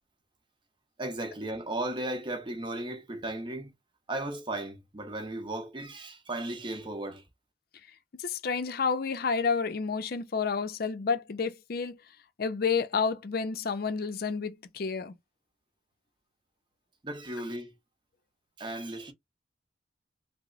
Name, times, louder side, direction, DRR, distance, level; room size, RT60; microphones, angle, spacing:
voice 1, 1.0-3.7 4.1-7.2 17.0-17.7 18.6-19.1, right 1 dB, 25° right, 0.6 m, -35 dB
voice 2, 8.2-11.9 12.4-15.1, left 5 dB, 55° left, 0.5 m, -30 dB
2.9 x 2.0 x 3.7 m
head